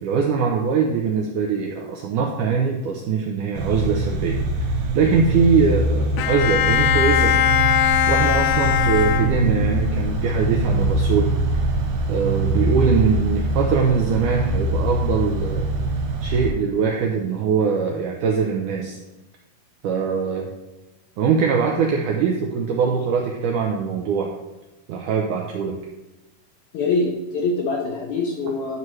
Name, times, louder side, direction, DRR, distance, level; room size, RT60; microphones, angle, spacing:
voice 1, 0.0-4.4 4.9-7.3 8.1-11.3 12.1-15.7 16.2-19.0 19.8-20.5 21.2-24.3 24.9-25.8, right 5 dB, 80° right, 1 dB, 1.8 m, -22 dB
sound 1, 3.5-16.5, right 1 dB, 65° right, 2.1 m, -23 dB
Bowed string instrument, 6.2-9.8, left 11 dB, 90° left, 1.9 m, -20 dB
voice 2, 26.7-28.8, left 3 dB, 70° left, -1 dB, 1.8 m, -24 dB
12.0 x 6.0 x 3.2 m, 1.0 s
omnidirectional pair, 4.4 m